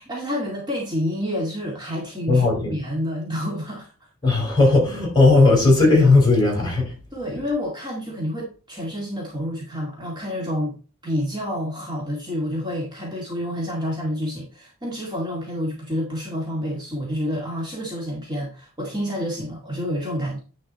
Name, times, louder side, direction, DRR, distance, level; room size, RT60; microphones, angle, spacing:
voice 1, 0.0-3.9 7.1-10.8 11.0-20.4, equal, 20° right, 2.1 m, -28 dB
voice 2, 2.3-2.7 4.2-6.9, left 3 dB, 20° left, 4.5 m, -16 dB
9.8 x 4.8 x 4.1 m
head